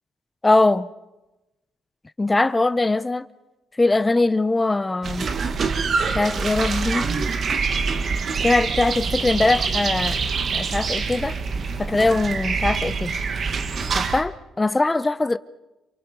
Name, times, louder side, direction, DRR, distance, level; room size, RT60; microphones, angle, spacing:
voice 1, 0.4-0.9 2.2-3.3 3.7-5.3 6.1-7.1 8.4-10.2 10.5-11.3 11.8-13.2 13.9-15.4, left 2 dB, 20° left, 0.7 m, -21 dB
sound 1, 5.0-14.2, right 5 dB, 50° right, 1.6 m, -25 dB
28.5 x 23.0 x 5.3 m
cardioid pair, 90°, 0 cm